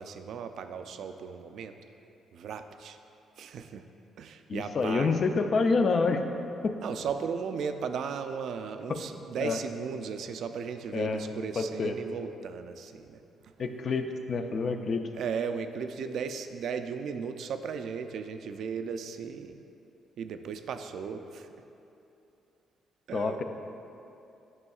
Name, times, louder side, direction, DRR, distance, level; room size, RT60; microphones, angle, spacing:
voice 1, 0.0-1.7 2.3-3.0 3.4-3.8 4.2-5.2 6.8-13.2 15.1-19.5 20.2-21.5 23.1-23.4, right 6 dB, 70° right, 8 dB, 0.3 m, -36 dB
voice 2, 4.5-6.3 6.6-6.8 8.9-9.0 9.4-9.6 10.9-11.2 11.6-11.9 13.6-15.0 23.1-23.4, left 4 dB, 50° left, 6 dB, 0.4 m, -27 dB
9.7 x 5.3 x 2.4 m, 2.8 s
cardioid pair, 90°, 0 cm